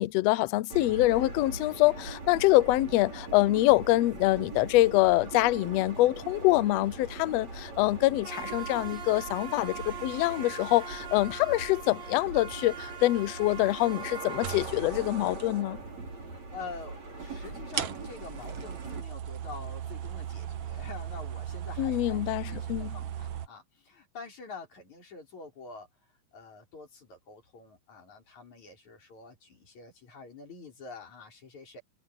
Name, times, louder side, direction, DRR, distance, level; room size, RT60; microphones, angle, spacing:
voice 1, 0.0-15.8 21.8-22.9, left 18 dB, 90° left, 1.4 m, -25 dB
sound 1, 0.7-19.0, right 4 dB, 55° right, 6.9 m, -40 dB
sound 2, 14.4-15.5 16.8-16.9 17.7-23.5, right 10 dB, 70° right, 1.1 m, -37 dB
voice 2, 16.3-31.8, left 4 dB, 60° left, 6.6 m, -46 dB
omnidirectional pair, 3.7 m